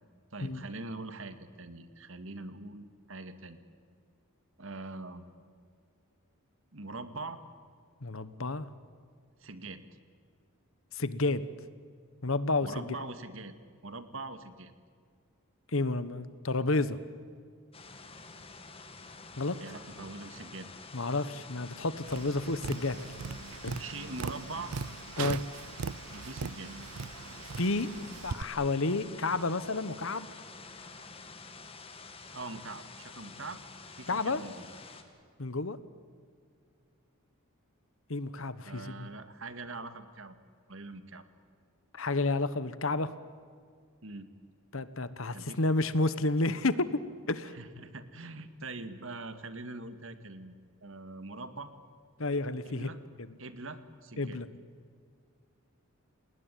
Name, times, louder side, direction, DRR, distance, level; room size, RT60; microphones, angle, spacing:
voice 1, 0.3-3.6 4.6-5.2 6.7-7.4 9.4-9.8 12.6-13.5 13.8-14.7 19.6-20.7 23.8-24.7 26.1-26.7 32.3-33.6 34.0-34.7 38.6-40.4 40.7-41.2 44.0-44.3 45.3-45.6 47.5-50.5 50.8-51.7 52.6-53.0 53.4-54.4, right 3 dB, 60° right, 10 dB, 2.0 m, -43 dB
voice 2, 8.0-8.7 10.9-11.4 12.2-12.9 15.7-17.0 19.4-19.6 20.9-23.1 23.6-23.8 25.2-25.4 27.6-27.9 28.2-30.3 34.1-34.4 35.4-35.8 38.1-39.1 41.9-43.1 44.7-47.0 47.3-47.5 52.2-52.9 54.2-54.5, left 2 dB, 65° left, 14 dB, 1.3 m, -30 dB
sound 1, 17.7-35.0, left 4 dB, 25° left, 2.2 m, -49 dB
Tap, 22.0-28.4, right 5 dB, 85° right, 0.6 m, -39 dB
29.0 x 19.5 x 9.3 m, 2.1 s
head